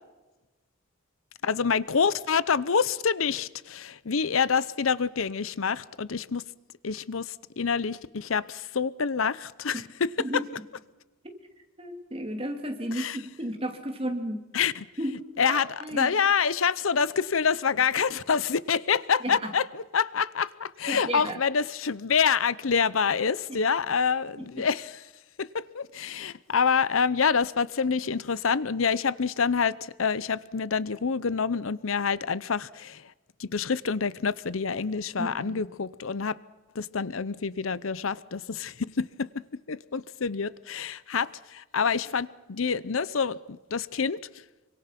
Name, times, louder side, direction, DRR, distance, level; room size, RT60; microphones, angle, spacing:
voice 1, 1.4-6.5 6.8-10.4 12.9-13.2 14.5-14.9 15.4-25.0 25.4-33.1 33.4-36.4 36.7-44.2, left 6 dB, 85° left, 0.7 m, -27 dB
voice 2, 11.8-14.4 15.0-15.1 15.5-16.1 19.4-19.5 20.9-21.4 35.2-35.6, right 1 dB, 30° right, 2.8 m, -33 dB
26.5 x 24.5 x 5.9 m
head